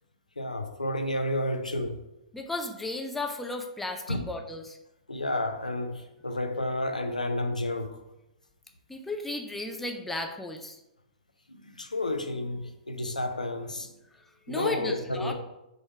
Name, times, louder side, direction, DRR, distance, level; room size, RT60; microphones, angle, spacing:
voice 1, 0.4-2.0 4.1-4.2 5.1-8.0 11.5-13.9 14.5-15.3, left 1 dB, 90° left, 0.5 m, -31 dB
voice 2, 2.3-4.8 8.9-10.8 14.5-15.3, left 2 dB, 5° left, 0.4 m, -34 dB
3.8 x 2.9 x 4.5 m
figure-of-eight pair, 115°, 4 cm